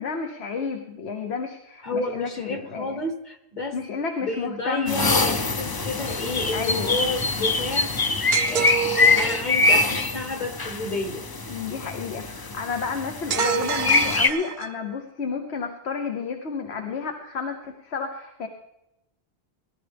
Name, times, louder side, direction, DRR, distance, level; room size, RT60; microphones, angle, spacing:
voice 1, 0.0-3.0 3.7-5.1 6.5-7.0 11.5-18.5, left 5 dB, 90° left, 4 dB, 1.3 m, -31 dB
voice 2, 1.8-3.8 4.2-8.0 8.4-8.7 9.1-11.2, left 2 dB, 45° left, 5 dB, 1.3 m, -30 dB
sound 1, 4.9-14.3, left 3 dB, 30° left, 0.5 m, -24 dB
sound 2, 8.3-9.5 13.3-14.9, right 8 dB, 60° right, 0.7 m, -27 dB
18.0 x 12.0 x 3.5 m, 0.85 s
omnidirectional pair, 1.1 m